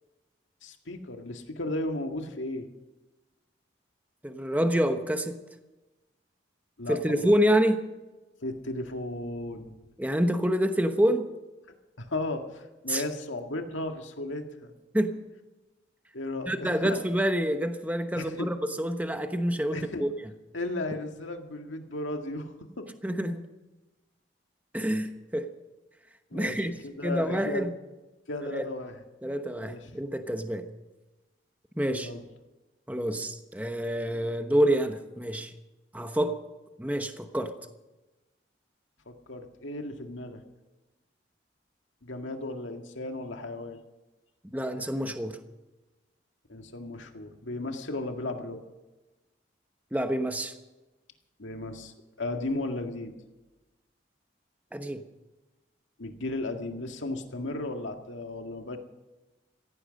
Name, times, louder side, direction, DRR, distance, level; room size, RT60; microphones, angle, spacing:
voice 1, 0.6-2.7 6.8-7.3 8.4-9.8 12.0-14.7 16.1-17.0 18.1-18.5 19.7-20.0 20.5-22.9 26.3-27.7 28.3-29.0 29.6-30.0 31.9-32.2 39.1-40.4 42.0-43.8 46.5-48.6 51.4-53.1 56.0-58.8, left 2 dB, 85° left, 4 dB, 1.9 m, -35 dB
voice 2, 4.2-5.3 6.9-7.8 10.0-11.3 12.9-13.0 14.9-15.1 16.5-20.1 23.0-23.5 24.7-25.5 26.3-26.7 27.0-27.7 28.5-28.6 29.2-30.6 31.8-32.1 32.9-35.5 35.9-36.4 36.8-37.5 44.5-45.4 49.9-50.5 54.7-55.0, equal, 10° right, 7 dB, 1.0 m, -27 dB
16.5 x 15.5 x 5.2 m, 1.1 s
head